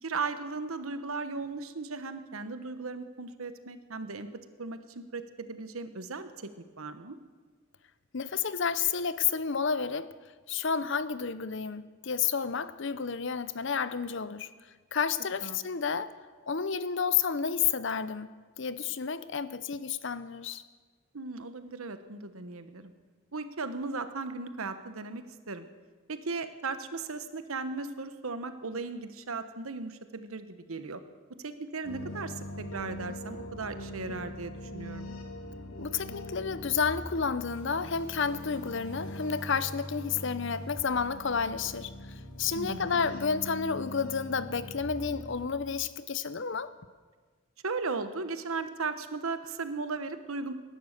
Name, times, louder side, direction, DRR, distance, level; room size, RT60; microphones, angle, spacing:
voice 1, 0.0-4.3 4.6-6.5 6.8-7.2 15.4-15.6 21.1-22.9 23.3-25.7 26.1-31.0 31.4-35.1 42.5-43.0 47.6-50.5, right 4 dB, 80° right, 1.1 m, -37 dB
voice 2, 8.1-10.1 10.5-14.5 14.9-16.1 16.5-18.3 18.6-20.6 35.8-46.7, left 6 dB, 60° left, 0.7 m, -31 dB
sound 1, 31.8-45.5, left 1 dB, 75° left, 2.8 m, -42 dB
18.5 x 11.5 x 6.6 m
head